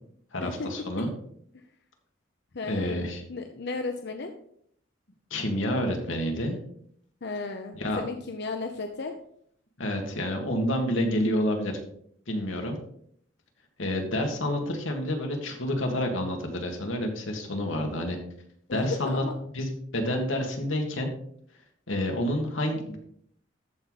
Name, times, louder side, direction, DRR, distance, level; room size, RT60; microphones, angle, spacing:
voice 1, 0.3-1.1 2.7-3.2 5.3-6.6 7.7-8.0 9.8-11.7 12.3-12.8 13.8-18.2 18.7-19.2 19.5-21.1 21.9-23.0, left 1 dB, 90° left, 2 dB, 2.0 m, -28 dB
voice 2, 2.5-4.3 7.2-9.1 18.7-18.8 19.0-19.3, left 3 dB, 60° left, 6 dB, 0.7 m, -35 dB
13.5 x 4.8 x 4.1 m, 0.66 s
head